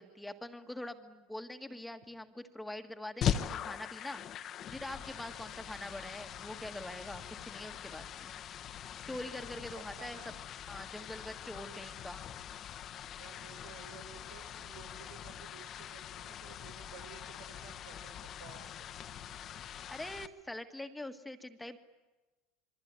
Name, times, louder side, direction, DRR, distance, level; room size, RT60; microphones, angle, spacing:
voice 1, 0.0-4.2 4.7-8.3 9.1-10.2 10.7-12.3 19.9-21.8, left 1 dB, 5° left, 6 dB, 1.7 m, -44 dB
sound 1, 3.2-20.3, left 9 dB, 40° left, 1.2 m, -42 dB
voice 2, 5.3-6.0 9.9-10.4 13.2-18.7, right 8 dB, 90° right, 6 dB, 5.0 m, -55 dB
26.5 x 23.0 x 9.6 m, 1.1 s
supercardioid pair, 130°, 0 cm